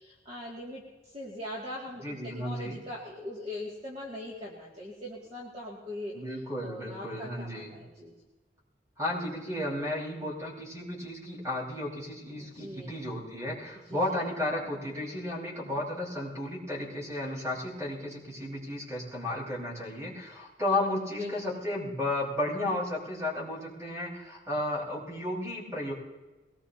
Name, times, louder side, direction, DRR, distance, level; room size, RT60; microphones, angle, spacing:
voice 1, 0.0-6.1 6.6-8.1 12.4-12.9 13.9-14.2 21.2-21.6, left 1 dB, 35° right, -5 dB, 2.3 m, -41 dB
voice 2, 2.0-2.8 6.1-7.8 9.0-25.9, left 1 dB, 15° right, -5 dB, 4.9 m, -33 dB
22.0 x 19.0 x 2.9 m, 1.2 s
head